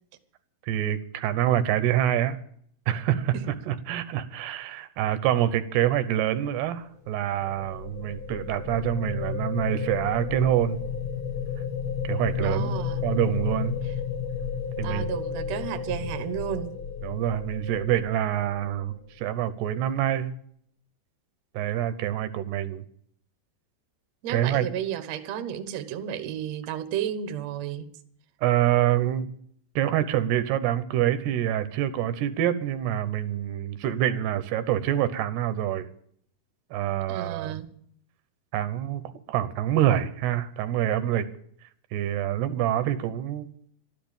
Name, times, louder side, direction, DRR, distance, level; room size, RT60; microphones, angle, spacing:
voice 1, 0.7-2.4 2.9-10.8 12.0-13.8 14.8-15.0 17.0-20.3 21.5-22.8 24.3-24.7 28.4-29.3 29.8-35.9 36.7-37.6 38.5-41.3 41.9-43.5, right 11 dB, 80° right, 12 dB, 3.0 m, -26 dB
sound 1, 6.9-19.1, left 7 dB, 40° left, 2.0 m, -33 dB
voice 2, 12.4-13.0 14.8-16.7 24.2-27.9 37.1-37.7, right 10 dB, 60° right, 9 dB, 1.9 m, -32 dB
13.0 x 12.5 x 8.8 m, 0.64 s
omnidirectional pair, 4.7 m